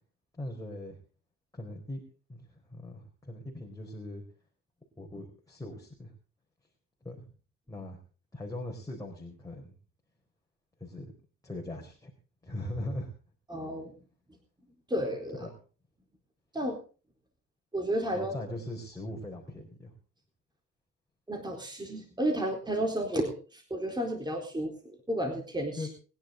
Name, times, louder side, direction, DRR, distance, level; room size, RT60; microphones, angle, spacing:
voice 1, 0.4-1.0 1.5-2.0 2.3-4.2 5.0-6.1 7.0-7.3 7.7-8.0 8.3-9.8 10.8-11.1 11.4-12.1 12.4-13.1 15.4-15.5 18.1-19.9 25.8-25.9, left 1 dB, 10° left, -1 dB, 4.2 m, -40 dB
voice 2, 13.5-14.0 14.9-15.5 16.5-16.8 17.7-18.3 21.3-25.9, right 1 dB, 15° right, 2 dB, 4.1 m, -32 dB
21.5 x 10.5 x 4.0 m, 0.36 s
cardioid pair, 90°, 30 cm